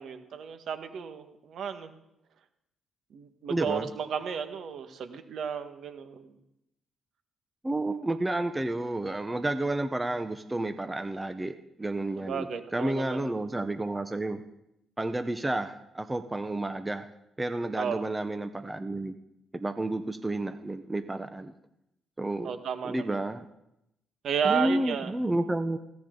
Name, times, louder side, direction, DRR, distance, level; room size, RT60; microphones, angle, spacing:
voice 1, 0.0-1.9 3.1-6.3 12.2-13.2 17.8-18.0 22.4-23.2 24.2-25.1, right 7 dB, 65° right, 8 dB, 1.8 m, -33 dB
voice 2, 3.5-3.9 7.6-14.4 15.0-17.1 17.4-19.2 19.5-21.5 22.2-22.5 22.8-23.4 24.4-25.8, right 1 dB, 15° right, 9 dB, 1.0 m, -31 dB
20.5 x 17.0 x 4.0 m, 0.83 s
cardioid pair, 90°, 0 cm